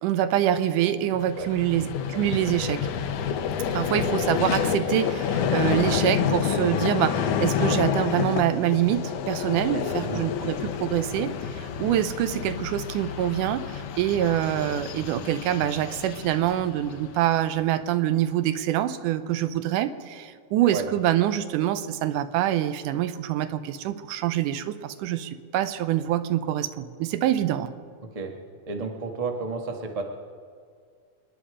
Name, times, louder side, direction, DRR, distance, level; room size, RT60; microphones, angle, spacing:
voice 1, 0.0-2.9 3.7-27.7, right 12 dB, 85° right, 12 dB, 2.2 m, -25 dB
Vehicle, 1.1-17.5, left 8 dB, 75° left, 2.2 m, -29 dB
voice 2, 3.8-4.3 10.0-10.3 20.7-20.8 28.1-28.3 28.7-30.0, right 4 dB, 50° right, 2 dB, 0.4 m, -32 dB
27.0 x 10.5 x 5.0 m, 2.1 s
omnidirectional pair, 3.6 m